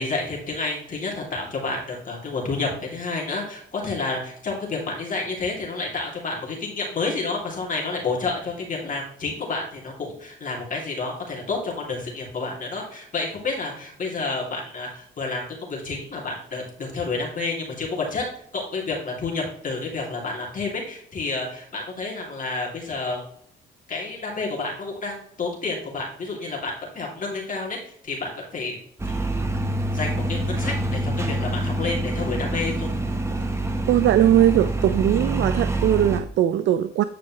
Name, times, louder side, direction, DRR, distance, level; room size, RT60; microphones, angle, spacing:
voice 1, 0.0-18.2 18.5-23.3 23.9-27.8 28.0-28.8 29.1-29.2 29.9-32.9, left 3 dB, 40° left, -2 dB, 2.7 m, -30 dB
sound 1, 29.0-36.2, right 1 dB, 15° right, 1.0 m, -26 dB
voice 2, 33.9-37.0, right 11 dB, 70° right, 12 dB, 0.4 m, -20 dB
9.3 x 5.0 x 3.1 m, 0.65 s
cardioid pair, 90°, 20 cm